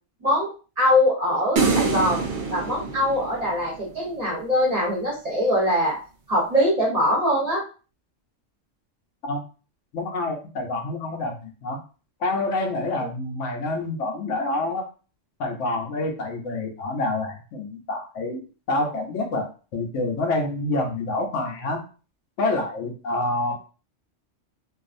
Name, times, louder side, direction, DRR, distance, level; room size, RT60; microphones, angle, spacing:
voice 1, 0.8-2.2 2.5-6.0 6.3-7.6, left 1 dB, 35° right, -4 dB, 1.0 m, -22 dB
sound 1, 1.6-4.0, right 4 dB, 70° right, 1.0 m, -25 dB
voice 2, 9.9-11.8 12.2-14.9 15.4-19.5 19.7-21.8 22.4-23.5, left 2 dB, 75° left, 2 dB, 1.0 m, -27 dB
2.6 x 2.4 x 2.5 m, 0.36 s
omnidirectional pair, 1.3 m